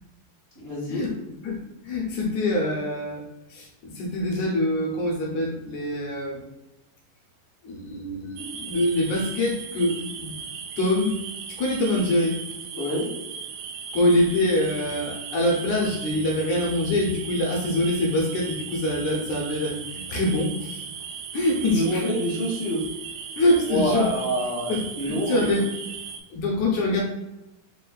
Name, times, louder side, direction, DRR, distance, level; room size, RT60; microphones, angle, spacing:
voice 1, 0.6-1.0 12.7-13.1 21.7-22.8 23.6-25.4, equal, 65° right, -8 dB, 0.5 m, -26 dB
voice 2, 1.4-3.2 3.5-6.4 7.6-10.4 10.8-11.2 11.5-12.4 13.9-20.8 21.3-22.0 23.4-24.1 24.7-25.6 26.3-27.0, left 1 dB, 70° left, -1 dB, 1.9 m, -24 dB
sound 1, 8.4-26.2, right 6 dB, 90° right, 1.6 m, -37 dB
5.2 x 2.6 x 3.8 m, 0.96 s
omnidirectional pair, 4.0 m